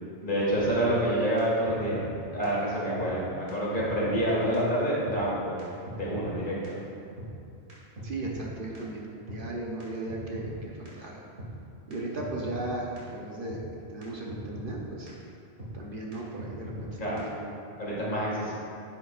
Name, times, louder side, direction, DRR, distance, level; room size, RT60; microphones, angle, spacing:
voice 1, 0.2-2.0 2.3-5.6 5.9-6.6 17.0-17.2 17.8-18.5, right 1 dB, 50° left, -7 dB, 2.1 m, -27 dB
sound 1, 0.9-1.0 1.4-1.5 1.6-2.2 2.4-2.5 3.0-3.1 3.5-3.6 3.7-4.3 4.5-4.6 5.1-5.2 5.6-5.7 5.9-6.4 6.6-6.7 7.2-7.3 7.7-8.5 8.7-8.8 9.3-9.4 9.8-9.9 10.1-10.6 10.9-11.0 11.4-11.5 11.9-12.0 12.2-12.7 13.0-13.1 13.5-13.6 14.0-14.1 14.3-14.8 15.1-15.2 15.6-15.7 16.1-16.2 16.4-16.9 17.2-17.3, equal, 80° right, 2.4 m, -40 dB
voice 2, 8.0-11.2 11.9-13.6 13.9-15.1 15.7-17.6, right 2 dB, 55° right, -2 dB, 1.1 m, -36 dB
10.0 x 7.7 x 2.5 m, 2.6 s
omnidirectional pair, 1.1 m